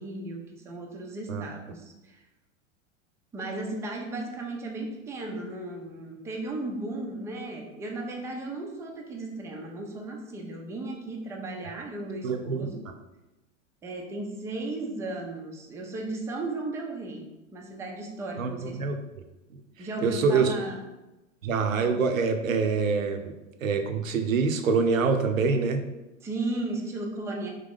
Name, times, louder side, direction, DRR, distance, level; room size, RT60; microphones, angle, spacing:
voice 1, 0.0-2.2 3.3-12.8 13.8-18.8 19.8-20.8 26.2-27.5, right 2 dB, 10° right, 1 dB, 0.3 m, -35 dB
voice 2, 12.2-12.7 18.4-19.0 19.8-20.5 21.4-23.3 23.6-25.8, right 5 dB, 80° right, 6 dB, 0.7 m, -25 dB
3.7 x 2.8 x 3.6 m, 1.0 s
hypercardioid pair, 100°, 39 cm